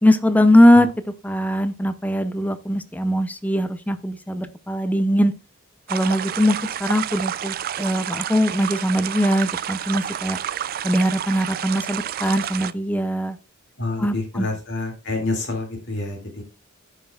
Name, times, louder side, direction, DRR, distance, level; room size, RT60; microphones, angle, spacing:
voice 1, 0.0-5.3 5.9-10.4 10.8-13.4 14.0-14.5, equal, 10° left, 11 dB, 0.5 m, -20 dB
sound 1, 5.9-12.7, right 10 dB, 45° right, 0.3 m, -29 dB
voice 2, 13.8-16.4, left 2 dB, 55° left, 2 dB, 2.4 m, -28 dB
14.0 x 5.6 x 2.3 m, 0.31 s
head